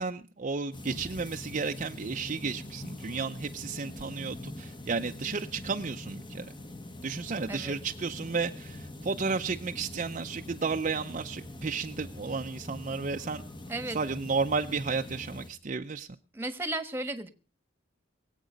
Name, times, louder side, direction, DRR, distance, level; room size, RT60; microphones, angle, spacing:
voice 1, 0.0-6.5 7.0-13.4 13.9-16.1, right 4 dB, 45° right, 5 dB, 0.6 m, -33 dB
sound 1, 0.7-15.5, left 1 dB, 25° left, 1.3 m, -43 dB
voice 2, 7.5-7.8 13.7-14.0 16.3-17.3, right 2 dB, 15° right, 11 dB, 1.3 m, -34 dB
22.5 x 8.3 x 5.2 m, 0.35 s
head